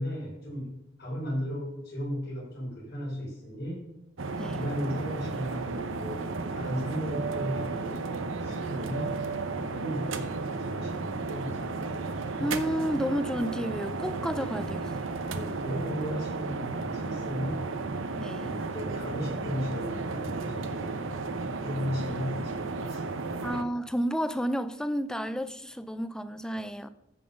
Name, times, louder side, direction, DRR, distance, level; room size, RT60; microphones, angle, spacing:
voice 1, 0.0-3.9 4.5-6.2 6.5-8.0 8.4-9.2 9.6-12.0 14.3-14.7 15.3-17.7 18.4-21.1 21.6-23.4, equal, 55° left, -3 dB, 4.9 m, -36 dB
sound 1, 4.2-23.6, right 3 dB, 80° right, 0.9 m, -33 dB
voice 2, 12.4-14.8 18.2-18.5 23.4-26.9, equal, 5° left, 12 dB, 0.5 m, -31 dB
14.0 x 5.8 x 5.4 m, 0.87 s
head